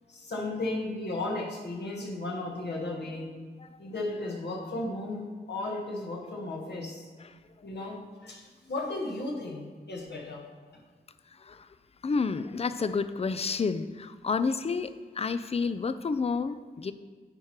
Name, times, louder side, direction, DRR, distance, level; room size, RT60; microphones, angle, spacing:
voice 1, 0.1-3.3 3.8-7.0 7.6-10.4, left 2 dB, 70° left, -1 dB, 1.6 m, -35 dB
voice 2, 12.0-16.9, left 4 dB, 35° left, 12 dB, 0.5 m, -30 dB
9.6 x 4.6 x 4.4 m, 1.5 s
cardioid pair, 55°, 18 cm